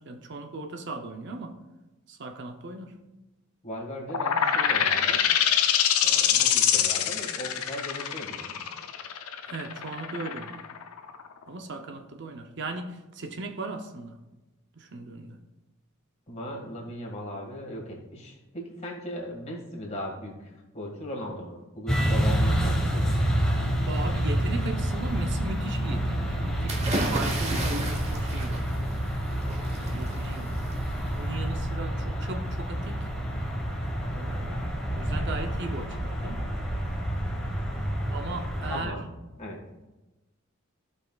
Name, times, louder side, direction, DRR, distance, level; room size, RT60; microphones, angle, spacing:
voice 1, 0.0-1.5 2.1-3.0 9.5-10.6 11.5-14.2 14.8-15.4 23.9-28.7 29.8-30.6 31.1-33.1 34.1-36.4 38.1-38.9, right 3 dB, 55° right, 0.7 m, -37 dB
voice 2, 3.6-5.4 6.0-8.6 16.3-23.1 38.7-39.1 39.4-39.6, equal, 30° left, 1.8 m, -38 dB
sound 1, 4.1-11.4, left 9 dB, 90° left, 0.6 m, -24 dB
sound 2, 21.9-38.8, equal, 5° left, 1.3 m, -28 dB
sound 3, 26.7-31.5, right 2 dB, 30° right, 1.0 m, -34 dB
14.5 x 5.5 x 2.4 m
head